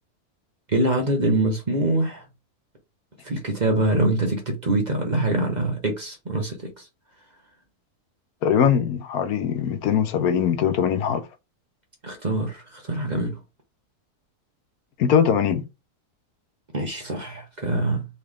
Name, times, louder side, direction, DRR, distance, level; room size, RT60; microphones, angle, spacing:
voice 1, 0.7-2.2 3.2-6.9 12.0-13.4 16.7-18.1, right 2 dB, 30° right, 1.0 m, -24 dB
voice 2, 8.4-11.3 15.0-15.6, left 8 dB, 75° left, 1.2 m, -21 dB
4.2 x 3.3 x 3.5 m
omnidirectional pair, 1.6 m